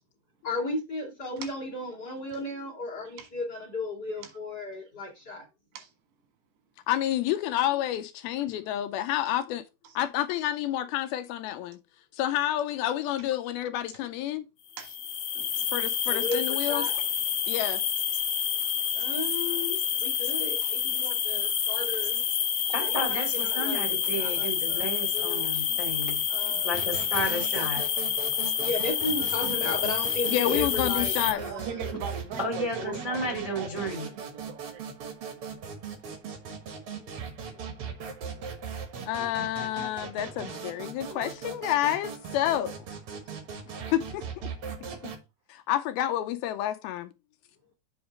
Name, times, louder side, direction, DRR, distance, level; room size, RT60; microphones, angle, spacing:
voice 1, 0.4-5.4 16.1-16.9 18.9-22.2 22.8-25.8 26.3-26.8 28.6-31.9 37.5-37.9 41.1-41.3, left 2 dB, 35° left, 1.7 m, -35 dB
voice 2, 6.9-9.6 10.0-11.8 12.1-14.4 15.7-16.9 17.5-17.8 30.3-31.4 39.1-42.8 43.9-44.3 45.5-47.1, left 12 dB, 80° left, 2.3 m, -29 dB
sound 1, 14.7-31.3, left 8 dB, 60° left, 2.1 m, -28 dB
voice 3, 22.7-26.2 26.6-27.8 32.4-34.1, equal, 30° right, 0.6 m, -32 dB
sound 2, 26.7-45.2, right 6 dB, 65° right, 1.4 m, -39 dB
voice 4, 31.5-34.9, right 6 dB, 90° right, 3.7 m, -40 dB
7.8 x 3.5 x 5.1 m
omnidirectional pair, 4.6 m